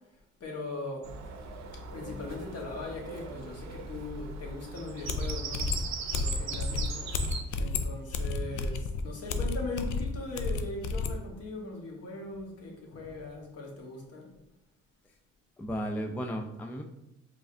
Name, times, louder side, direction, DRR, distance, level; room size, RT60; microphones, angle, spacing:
voice 1, 0.4-1.1 1.9-5.7 6.1-7.1 7.6-14.3, left 2 dB, 55° left, 0 dB, 1.2 m, -40 dB
Bird vocalization bird call bird song, 1.0-7.4, right 4 dB, 65° right, 0.7 m, -39 dB
sound 1, 4.8-4.9 5.1-11.2, left 3 dB, 80° left, 0.4 m, -32 dB
voice 2, 8.3-8.7 15.6-16.8, equal, 5° left, 3 dB, 0.3 m, -35 dB
4.7 x 3.2 x 2.5 m, 0.89 s
cardioid pair, 90°, 30 cm